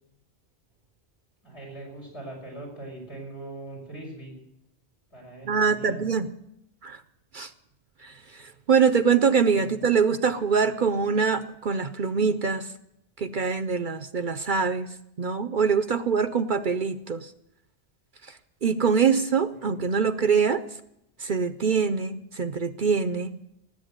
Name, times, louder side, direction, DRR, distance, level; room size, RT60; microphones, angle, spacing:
voice 1, 1.4-4.3 5.1-6.0 9.5-9.8 19.5-19.9, right 2 dB, 70° left, -1 dB, 6.5 m, -41 dB
voice 2, 5.5-6.3 6.8-7.0 7.3-7.5 8.0-12.7 13.2-17.3 18.6-20.6 21.2-23.4, right 5 dB, 50° right, 13 dB, 0.8 m, -24 dB
18.0 x 8.3 x 8.1 m, 0.80 s
omnidirectional pair, 1.2 m